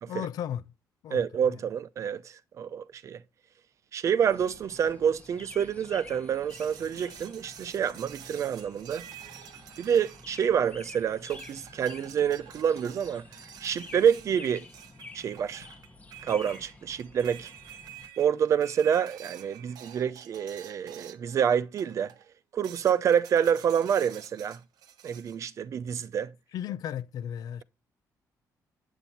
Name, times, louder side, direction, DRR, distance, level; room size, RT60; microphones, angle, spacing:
voice 1, 0.1-0.7 1.0-1.6 26.5-27.6, left 10 dB, 75° left, 0.7 m, -35 dB
voice 2, 1.1-3.2 3.9-9.1 9.8-13.2 13.6-14.6 15.1-15.7 16.2-17.5 18.2-22.1 22.5-24.6 25.0-26.3, right 8 dB, 50° right, 0.7 m, -27 dB
sound 1, 4.3-18.1, left 3 dB, 20° left, 1.1 m, -50 dB
sound 2, 6.5-10.9 11.3-21.4 21.8-22.3 22.6-25.4, right 10 dB, 85° right, 1.1 m, -49 dB
9.2 x 8.2 x 4.3 m
cardioid pair, 150°, 7 cm